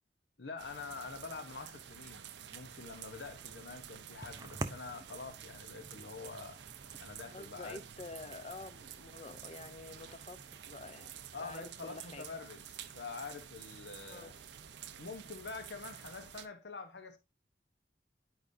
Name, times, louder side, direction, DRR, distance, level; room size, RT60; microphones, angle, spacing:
voice 1, 0.4-6.6 7.0-7.8 11.3-14.3 15.0-17.2, left 4 dB, 80° left, 1.0 m, -46 dB
sound 1, 0.6-16.5, right 9 dB, 85° right, 0.5 m, -50 dB
sound 2, 2.7-10.9, right 2 dB, 20° right, 0.4 m, -50 dB
voice 2, 7.3-10.4 10.7-11.1 11.4-12.2 14.1-14.3, left 3 dB, 35° left, 0.6 m, -48 dB
10.5 x 4.9 x 2.6 m
head